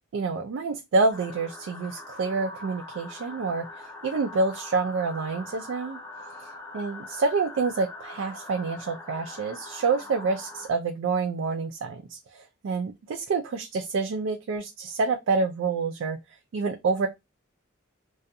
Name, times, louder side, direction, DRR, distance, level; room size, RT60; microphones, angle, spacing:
voice 1, 0.1-6.0 6.7-16.2 16.5-17.1, right 4 dB, 75° right, 0.3 m, -27 dB
sound 1, 1.1-10.7, left 2 dB, 10° left, 0.3 m, -42 dB
2.5 x 2.3 x 2.6 m
head